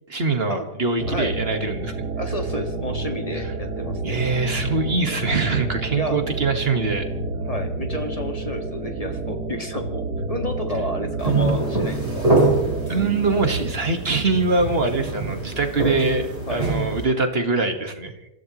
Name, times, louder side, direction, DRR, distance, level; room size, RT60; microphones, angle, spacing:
voice 1, 0.1-1.9 3.3-3.4 4.0-7.1 12.9-18.1, right 3 dB, 35° right, 6 dB, 1.7 m, -23 dB
sound 1, 1.0-13.7, right 2 dB, 70° right, 2.1 m, -30 dB
voice 2, 1.1-1.4 2.1-4.2 5.9-6.2 7.5-12.3 16.5-16.7, left 1 dB, 20° left, 4 dB, 1.8 m, -31 dB
sound 2, 11.2-17.0, right 2 dB, 20° right, 4.2 m, -24 dB
27.0 x 15.5 x 3.1 m, 0.95 s
omnidirectional pair, 1.9 m